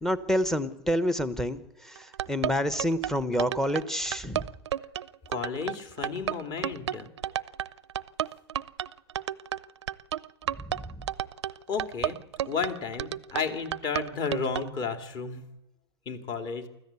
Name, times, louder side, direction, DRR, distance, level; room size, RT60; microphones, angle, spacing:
voice 1, 0.0-4.5 10.7-10.9, equal, 5° left, 12 dB, 1.0 m, -28 dB
sound 1, 2.0-14.7, right 11 dB, 85° right, 0.6 m, -32 dB
voice 2, 5.3-7.1 11.7-15.4 16.1-16.7, left 5 dB, 30° left, 7 dB, 2.6 m, -33 dB
25.0 x 14.5 x 8.3 m, 0.90 s
hypercardioid pair, 140°, 14 cm